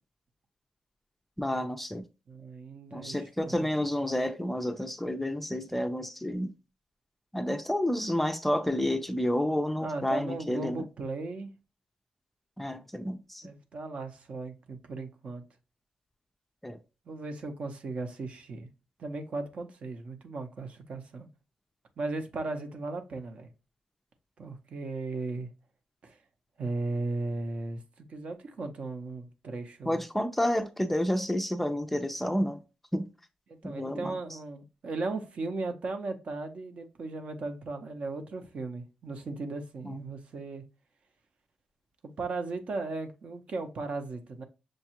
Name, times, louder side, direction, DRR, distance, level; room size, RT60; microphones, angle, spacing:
voice 1, 1.4-2.0 2.9-6.5 7.3-10.8 12.6-13.5 16.6-16.8 29.9-32.6 32.9-33.1 33.6-34.2 39.9-40.0, left 1 dB, 5° left, 0.4 m, -30 dB
voice 2, 2.3-3.6 9.8-11.5 13.4-15.4 17.1-18.7 19.0-21.3 22.0-23.5 24.4-25.5 26.0-26.2 26.6-30.0 33.5-40.6 42.2-44.4, right 3 dB, 55° right, 0.7 m, -36 dB
6.3 x 2.3 x 2.8 m
cardioid pair, 110°, 2 cm